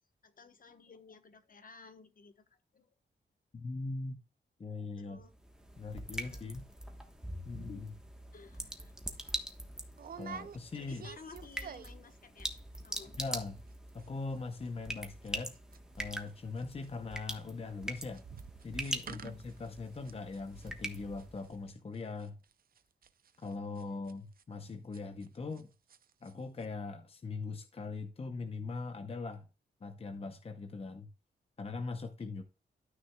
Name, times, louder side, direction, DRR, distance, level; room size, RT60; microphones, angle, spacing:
voice 1, 0.2-2.9 5.0-5.3 6.2-6.5 7.7-7.8 8.3-8.9 10.8-12.5 12.8-13.1 19.1-19.2 23.9-24.1 32.2-32.3, left 5 dB, 50° left, 1.1 m, -55 dB
voice 2, 3.5-4.2 4.6-5.2 5.8-6.6 7.5-7.9 10.2-11.1 13.2-13.6 13.9-15.5 16.0-18.2 18.6-22.4 23.4-25.7 26.2-29.5 29.8-31.1 31.6-32.4, left 3 dB, 35° left, 0.7 m, -41 dB
sound 1, 5.2-21.6, right 1 dB, 5° right, 1.2 m, -44 dB
sound 2, 8.6-8.8 9.1-9.3 10.0-12.1 12.4-12.8 13.0-13.1 13.4-13.7 14.0-16.3 16.6-25.6 25.9-26.3 26.6-26.7, right 7 dB, 55° right, 0.6 m, -50 dB
12.5 x 6.2 x 2.3 m
wide cardioid pair, 120°, 18 cm